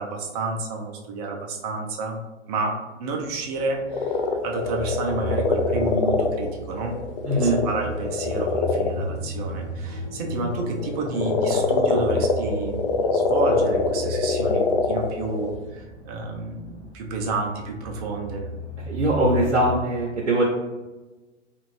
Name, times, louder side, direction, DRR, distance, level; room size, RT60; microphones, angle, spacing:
voice 1, 0.0-2.2 2.5-7.0 7.3-18.4, right 3 dB, 35° right, 1 dB, 0.5 m, -30 dB
sound 1, 3.3-19.9, equal, 20° left, 0.8 m, -35 dB
sound 2, 3.9-9.0 10.6-15.6, left 4 dB, 50° left, 0.4 m, -24 dB
voice 2, 7.2-7.6 18.8-20.4, right 1 dB, 80° right, -3 dB, 0.7 m, -21 dB
2.6 x 2.5 x 3.0 m, 1.1 s
figure-of-eight pair, 115°, 36 cm